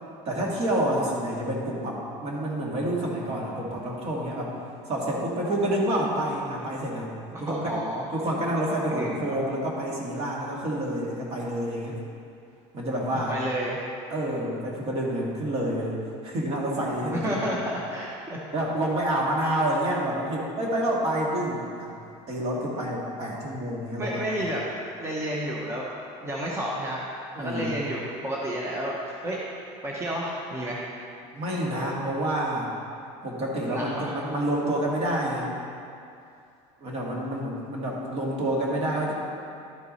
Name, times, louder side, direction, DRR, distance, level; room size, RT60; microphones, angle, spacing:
voice 1, 0.3-4.5 4.9-7.1 7.4-7.8 8.1-12.0 12.7-13.4 14.1-16.0 16.2-17.5 18.5-21.9 22.3-24.3 27.4-27.7 31.3-32.7 33.2-35.5 36.8-39.1, right 1 dB, 50° right, -3 dB, 1.8 m, -28 dB
voice 2, 7.3-8.0 8.9-9.4 13.3-13.8 16.8-18.4 24.0-24.6 25.0-25.9 26.2-27.0 27.4-29.4 29.8-30.9 33.7-34.1, right 1 dB, 20° right, -4 dB, 0.9 m, -31 dB
12.0 x 4.5 x 4.2 m, 2.5 s
cardioid pair, 120°, 14 cm